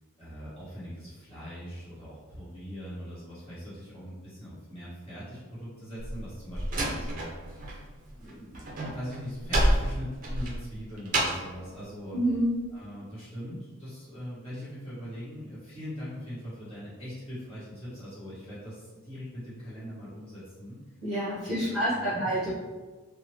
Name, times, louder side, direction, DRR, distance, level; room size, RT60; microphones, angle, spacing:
voice 1, 0.2-7.8 8.1-12.2 12.7-20.8 21.5-22.5, equal, 25° left, -11 dB, 1.2 m, -41 dB
Slam, 6.0-7.8 8.1-11.6, right 1 dB, 35° right, 0.4 m, -29 dB
voice 2, 12.1-12.5 21.0-22.5, right 1 dB, 5° right, -13 dB, 1.0 m, -28 dB
2.9 x 2.0 x 3.0 m, 1.3 s
head